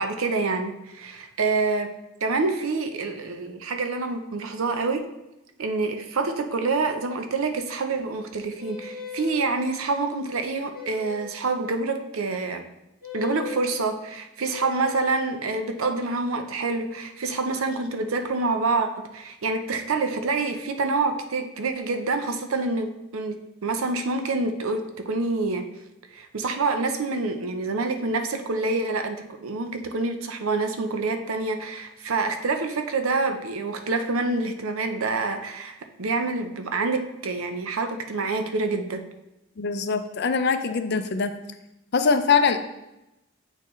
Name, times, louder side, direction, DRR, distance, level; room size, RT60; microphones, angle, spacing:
voice 1, 0.0-5.1 5.6-12.6 13.1-25.7 26.1-39.0, right 3 dB, 85° right, 6 dB, 0.6 m, -27 dB
sound 1, 8.6-9.5 10.7-11.3 13.0-13.7 14.5-15.1, left 4 dB, 10° right, 2.1 m, -37 dB
voice 2, 39.6-41.3 41.9-42.6, left 5 dB, 50° left, 9 dB, 0.4 m, -22 dB
8.1 x 4.3 x 3.1 m, 0.94 s
head